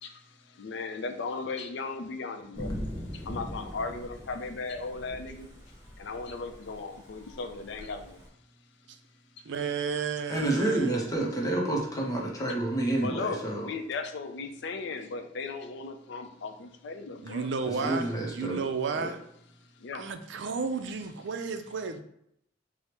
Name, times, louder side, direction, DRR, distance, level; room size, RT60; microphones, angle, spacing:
voice 1, 0.0-2.8 3.1-5.5 6.0-8.2 12.4-12.5 13.0-17.5 19.8-20.1, left 4 dB, 70° left, 7 dB, 0.4 m, -37 dB
Thunder / Rain, 2.5-8.3, equal, 15° right, 1.2 m, -41 dB
voice 2, 9.5-11.0 17.2-19.2 19.9-22.0, right 5 dB, 70° right, 8 dB, 0.4 m, -32 dB
voice 3, 10.3-13.7 17.7-18.6 18.9-19.1, right 2 dB, 20° left, -2 dB, 0.6 m, -29 dB
4.7 x 2.1 x 2.9 m, 0.73 s
head